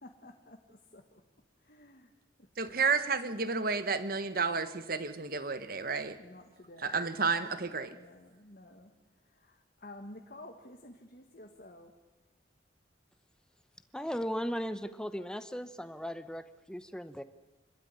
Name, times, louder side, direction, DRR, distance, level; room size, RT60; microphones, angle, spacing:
voice 1, 0.0-1.0 1.7-2.1 2.6-2.8 6.2-7.3 7.9-8.9 9.4-9.5 9.8-11.9, left 1 dB, 50° left, 1.8 m, -51 dB
voice 2, 2.6-6.2 6.8-7.9, right 4 dB, 50° right, 1.4 m, -31 dB
voice 3, 13.9-17.2, equal, 5° left, 0.9 m, -37 dB
26.5 x 13.0 x 9.8 m
head